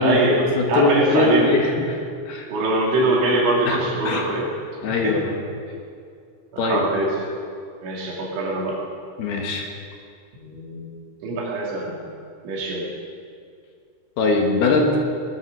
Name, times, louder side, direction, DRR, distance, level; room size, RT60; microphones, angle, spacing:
voice 1, 0.0-1.5 2.5-4.5 5.0-5.1 6.5-7.2 7.8-8.8 10.4-11.0 11.2-12.0 12.4-12.9, right 2 dB, 85° right, -3 dB, 5.0 m, -22 dB
voice 2, 0.6-2.0 2.3-2.5 3.6-4.2 4.8-5.4 6.6-6.8 9.2-9.7 14.2-14.9, left 3 dB, 65° left, 1 dB, 3.0 m, -21 dB
19.5 x 9.1 x 6.6 m, 2.3 s
omnidirectional pair, 5.4 m